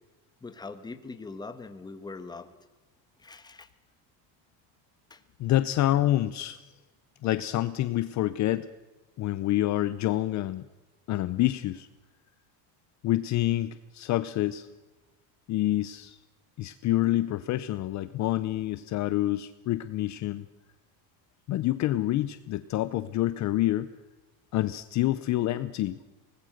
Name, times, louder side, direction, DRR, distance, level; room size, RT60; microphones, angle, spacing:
voice 1, 0.4-2.5 3.2-3.7 5.1-5.2, left 3 dB, 10° left, 9 dB, 1.3 m, -42 dB
voice 2, 5.4-6.6 7.2-8.7 9.2-10.7 11.1-11.9 13.0-14.7 15.5-16.2 16.6-20.5 21.5-23.9 24.5-26.0, left 14 dB, 40° left, 14 dB, 0.7 m, -27 dB
25.0 x 19.5 x 6.5 m, 1.2 s
cardioid pair, 150°, 44 cm